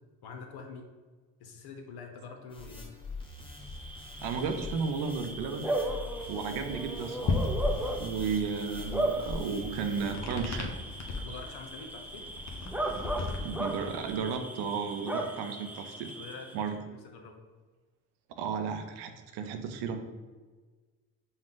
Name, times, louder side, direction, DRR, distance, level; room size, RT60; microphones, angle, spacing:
voice 1, 0.2-0.9 1.4-2.9 11.2-12.3 16.1-17.4, left 4 dB, 70° left, 3 dB, 1.0 m, -45 dB
sound 1, 2.5-10.1, left 3 dB, 15° left, 1.2 m, -44 dB
Bark / Cricket, 3.4-16.7, right 1 dB, 5° right, 0.5 m, -37 dB
voice 2, 4.2-5.7 6.3-7.4 8.0-10.7 13.4-16.1 16.5-16.8 18.4-20.1, right 5 dB, 75° right, 7 dB, 0.7 m, -34 dB
sound 2, 7.2-14.3, left 3 dB, 45° left, 0.9 m, -36 dB
5.2 x 2.4 x 3.7 m, 1.4 s
supercardioid pair, 65°, 40 cm